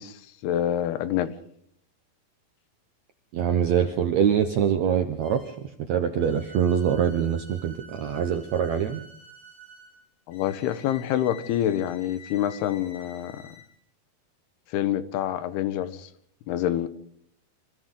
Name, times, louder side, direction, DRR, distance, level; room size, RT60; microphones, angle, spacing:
voice 1, 0.0-1.4 10.3-13.5 14.7-16.1 16.5-16.9, left 11 dB, 85° left, 3.0 m, -27 dB
voice 2, 3.3-5.5 5.8-9.0, right 8 dB, 75° right, 1.6 m, -24 dB
sound 1, 5.2-5.7 6.2-13.7, equal, 40° left, 7.4 m, -49 dB
29.0 x 25.0 x 3.8 m
omnidirectional pair, 4.5 m